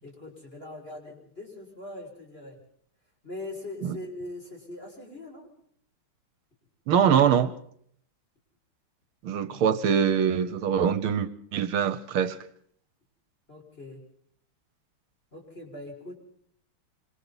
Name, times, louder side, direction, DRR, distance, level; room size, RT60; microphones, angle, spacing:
voice 1, 0.0-2.6 3.2-5.5 13.5-14.0 15.3-16.1, left 2 dB, 25° left, 1 dB, 6.3 m, -41 dB
voice 2, 6.9-7.5 9.2-12.4, right 8 dB, 75° right, 13 dB, 1.9 m, -23 dB
26.0 x 25.0 x 4.1 m, 0.64 s
omnidirectional pair, 2.4 m